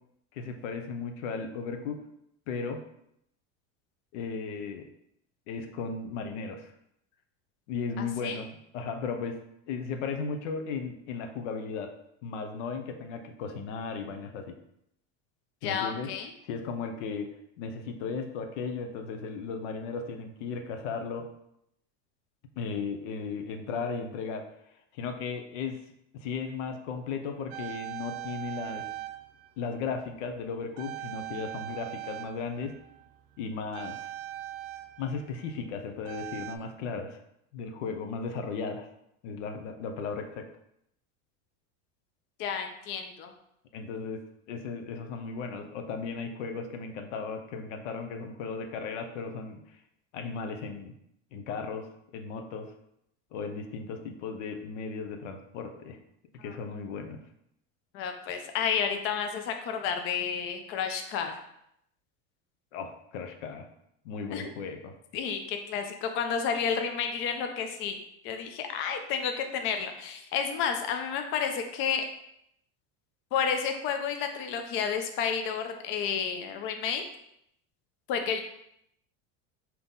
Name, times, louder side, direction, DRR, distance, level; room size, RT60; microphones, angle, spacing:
voice 1, 0.3-2.0 2.5-2.8 4.1-4.9 5.5-6.7 7.7-8.5 8.7-9.4 9.7-11.9 12.2-14.6 15.6-16.1 16.5-21.3 22.6-24.5 24.9-25.8 26.1-28.9 29.6-32.8 33.4-34.1 35.0-37.2 37.5-38.9 39.2-40.5 43.7-49.6 50.1-51.0 51.3-52.7 53.3-56.0 56.4-57.2 62.7-63.7 64.0-65.0, left 5 dB, 90° left, 6 dB, 0.7 m, -36 dB
voice 2, 8.0-8.4 15.6-16.3 42.4-43.3 56.4-56.6 57.9-61.4 64.3-64.5 65.1-72.0 73.3-77.0 78.1-78.4, left 7 dB, 35° left, 5 dB, 0.4 m, -31 dB
sound 1, 27.5-30.4 30.8-36.6, right 14 dB, 70° right, 0.6 m, -41 dB
3.8 x 2.9 x 3.6 m, 0.76 s
supercardioid pair, 150°, 36 cm